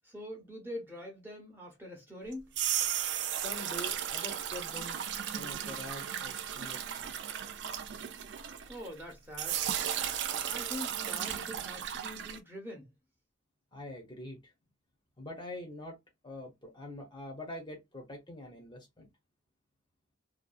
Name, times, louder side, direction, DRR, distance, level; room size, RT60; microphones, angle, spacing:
voice 1, 0.0-2.5 8.7-9.6 10.5-12.9, left 1 dB, 10° right, 0.7 m, -44 dB
sound 1, 2.3-9.0 9.3-12.4, right 9 dB, 65° right, 0.3 m, -35 dB
voice 2, 3.3-5.0 5.3-7.3 13.7-14.5 15.2-16.0 16.2-19.1, left 1 dB, 25° left, 0.6 m, -45 dB
2.6 x 2.2 x 2.3 m
head